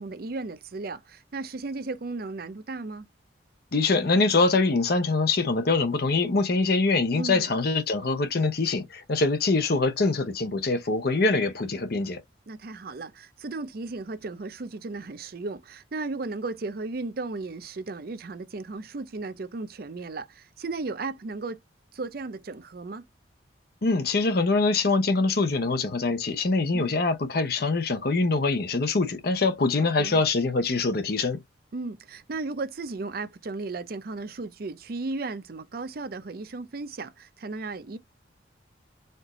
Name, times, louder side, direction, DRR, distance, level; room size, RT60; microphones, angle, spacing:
voice 1, 0.0-3.1 7.1-7.5 12.5-21.6 21.9-23.0 26.7-26.9 29.8-30.2 31.7-38.0, right 3 dB, 50° right, 0.5 m, -35 dB
voice 2, 3.7-12.2 23.8-31.4, left 3 dB, 55° left, 0.7 m, -24 dB
4.3 x 2.6 x 3.0 m
head